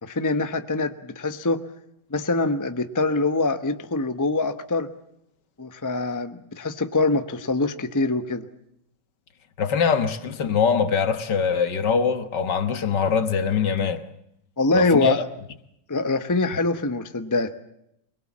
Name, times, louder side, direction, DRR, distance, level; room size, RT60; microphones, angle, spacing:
voice 1, 0.0-1.6 2.1-4.9 5.6-8.5 14.6-15.2 15.9-17.5, left 3 dB, 15° left, 0.7 m, -24 dB
voice 2, 9.6-14.0 14.7-15.2, left 6 dB, 65° left, 1.9 m, -23 dB
24.0 x 22.5 x 7.4 m
omnidirectional pair, 2.1 m